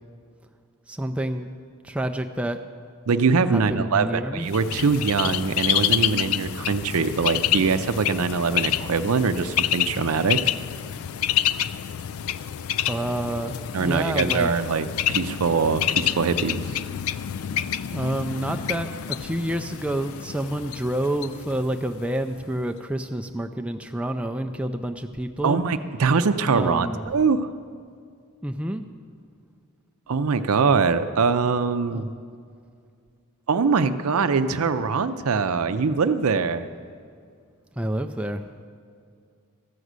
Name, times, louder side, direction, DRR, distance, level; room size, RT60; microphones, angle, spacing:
voice 1, 0.9-1.5 1.8-2.6 3.5-4.5 12.9-14.5 17.9-25.6 26.5-27.0 28.4-28.8 31.9-32.0 37.8-38.5, right 1 dB, 5° right, 4 dB, 0.3 m, -28 dB
voice 2, 3.1-10.4 13.7-16.8 25.4-27.5 30.1-32.1 33.5-36.7, right 5 dB, 80° right, 11 dB, 0.5 m, -23 dB
Bird, 4.5-22.2, left 11 dB, 75° left, 0.3 m, -28 dB
13.5 x 6.2 x 8.0 m, 2.2 s
head